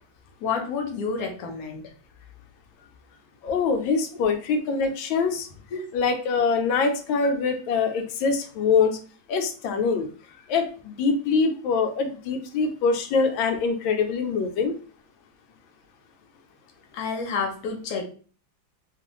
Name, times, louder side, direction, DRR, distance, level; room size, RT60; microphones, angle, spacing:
voice 1, 0.4-1.8 5.7-5.8 16.9-18.0, left 5 dB, 60° left, 2 dB, 1.0 m, -29 dB
voice 2, 3.4-5.5 5.9-9.0 9.3-10.1 10.5-14.7, left 5 dB, 85° left, 6 dB, 1.4 m, -24 dB
3.2 x 2.3 x 2.9 m, 0.40 s
omnidirectional pair, 2.1 m